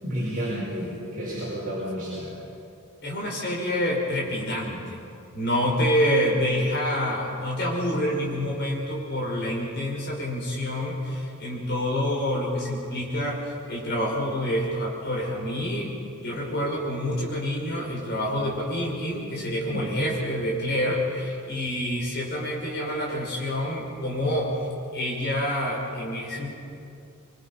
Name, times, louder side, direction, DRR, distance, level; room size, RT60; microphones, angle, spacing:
voice 1, 0.0-2.3 19.7-20.1, equal, 35° right, -9 dB, 6.2 m, -31 dB
voice 2, 3.0-5.0 5.3-15.9 16.2-24.7 24.9-26.5, equal, 45° left, -2 dB, 5.5 m, -27 dB
26.5 x 23.5 x 5.7 m, 2.6 s
head